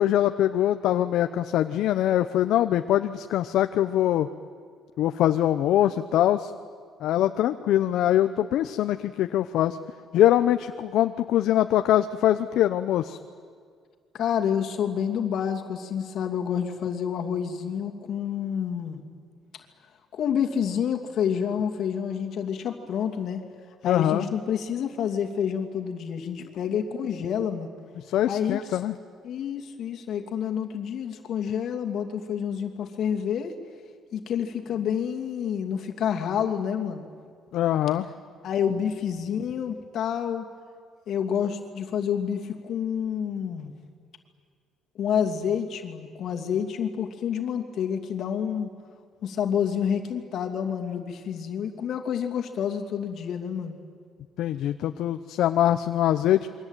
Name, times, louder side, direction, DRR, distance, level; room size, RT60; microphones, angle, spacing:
voice 1, 0.0-4.3 5.0-6.5 7.0-9.8 10.1-13.2 23.8-24.3 28.1-28.9 37.5-38.1 54.4-56.5, left 12 dB, 65° left, 9 dB, 0.8 m, -23 dB
voice 2, 14.1-19.0 20.1-23.4 23.8-27.7 28.3-28.8 29.2-33.5 34.1-37.1 38.4-40.5 41.1-43.7 44.9-48.7 49.2-53.8, left 8 dB, 50° left, 3 dB, 2.7 m, -28 dB
28.0 x 23.5 x 9.1 m, 2.1 s
cardioid pair, 170°, 0 cm